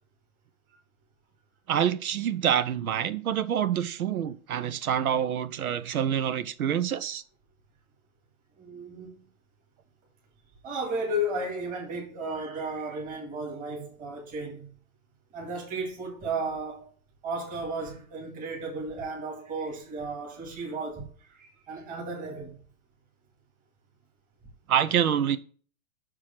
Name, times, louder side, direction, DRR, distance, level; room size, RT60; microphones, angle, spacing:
voice 1, 1.7-7.2 24.7-25.4, right 9 dB, 85° right, 0.8 m, -26 dB
voice 2, 8.6-9.2 10.6-14.7 15.3-16.9 17.2-22.5, right 1 dB, 20° right, 2.1 m, -34 dB
6.2 x 4.8 x 5.8 m
hypercardioid pair, 140°, 42 cm